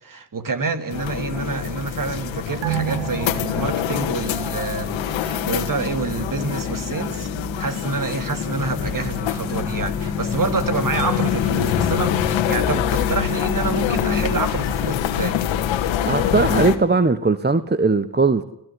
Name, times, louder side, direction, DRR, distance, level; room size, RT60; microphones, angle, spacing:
voice 1, 0.0-7.3 7.6-15.4, right 4 dB, 45° right, 2.6 m, -27 dB
sound 1, 0.9-16.8, left 10 dB, 80° left, 1.8 m, -25 dB
sound 2, 2.6-5.5 5.9-6.0, right 10 dB, 85° right, 1.6 m, -31 dB
sound 3, 2.8-15.5, left 5 dB, 5° left, 3.4 m, -32 dB
voice 2, 16.0-18.4, right 3 dB, 20° right, 1.2 m, -19 dB
29.0 x 15.5 x 9.9 m
hypercardioid pair, 45°, 45 cm